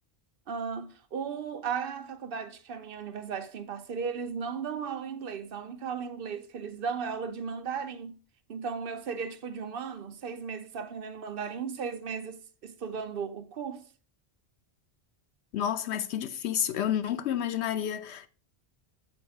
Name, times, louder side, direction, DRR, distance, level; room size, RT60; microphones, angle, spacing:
voice 1, 0.5-8.2 8.5-13.8, right 6 dB, 60° right, 0.8 m, -36 dB
voice 2, 15.5-18.3, left 10 dB, 85° left, 0.9 m, -30 dB
7.1 x 4.2 x 4.7 m
omnidirectional pair, 1.1 m